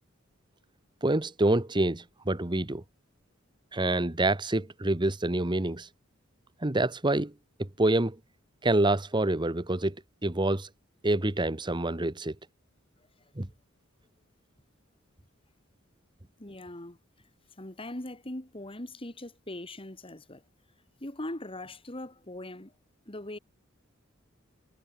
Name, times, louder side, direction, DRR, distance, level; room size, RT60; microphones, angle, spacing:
voice 1, 1.0-2.8 3.7-5.9 6.6-7.3 7.6-8.2 8.6-9.9 10.2-10.7 11.0-12.3 13.4-13.5, right 2 dB, 20° right, 1.2 m, -27 dB
voice 2, 16.4-17.0 17.6-20.4 21.0-22.7 23.1-23.4, left 1 dB, 25° left, 2.3 m, -40 dB
head